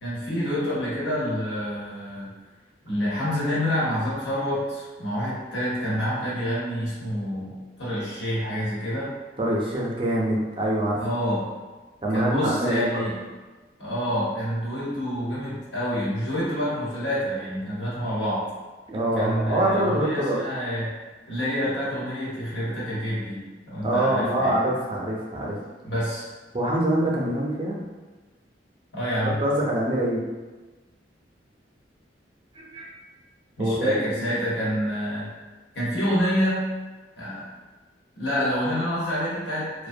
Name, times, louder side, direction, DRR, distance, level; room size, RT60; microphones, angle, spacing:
voice 1, 0.0-2.3 2.8-7.5 7.8-9.1 11.0-11.5 12.1-13.2 13.8-18.4 19.2-21.0 21.3-24.5 25.8-26.3 28.9-29.4 33.6-35.3 35.7-36.7 37.2-37.5 38.1-39.9, equal, 85° left, -8 dB, 1.1 m, -27 dB
voice 2, 9.4-11.0 12.0-12.8 18.9-20.4 23.8-25.6 26.5-27.8 29.2-30.2 32.6-32.9 33.6-34.3, right 1 dB, 30° right, -3 dB, 0.4 m, -25 dB
2.5 x 2.1 x 2.6 m, 1.3 s
head